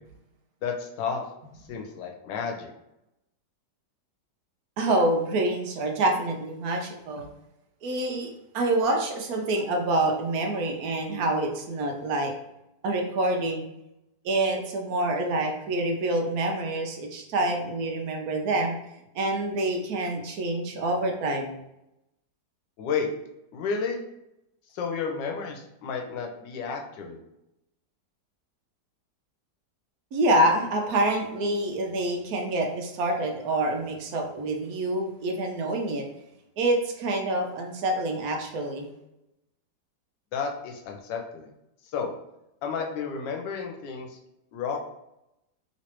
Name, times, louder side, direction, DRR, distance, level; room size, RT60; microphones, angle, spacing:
voice 1, 0.6-1.2 1.7-2.7 22.8-23.1 23.5-24.0 24.7-27.2 40.3-41.5 41.9-42.1 42.6-44.2 44.5-44.8, left 5 dB, 80° left, 3 dB, 1.3 m, -31 dB
voice 2, 4.8-7.3 7.8-12.3 12.8-13.6 14.2-18.8 19.1-21.6 30.1-36.0 36.6-38.9, right 1 dB, 65° right, 2 dB, 1.0 m, -26 dB
3.1 x 3.1 x 2.9 m, 0.84 s
omnidirectional pair, 1.9 m